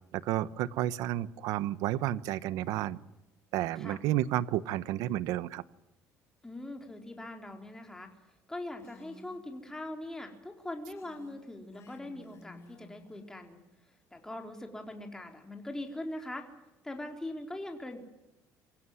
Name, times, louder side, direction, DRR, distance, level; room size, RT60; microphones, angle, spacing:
voice 1, 0.1-3.0 3.5-5.6, right 13 dB, 80° right, 16 dB, 1.1 m, -31 dB
voice 2, 6.4-8.1 8.5-13.6 14.1-16.5 16.8-18.0, left 1 dB, 10° left, 3 dB, 4.0 m, -41 dB
Female speech woman speaking, 8.8-9.4 10.9-13.2, left 1 dB, 50° left, 5.9 m, -54 dB
25.0 x 16.5 x 9.5 m, 0.94 s
cardioid pair, 115°, 6 cm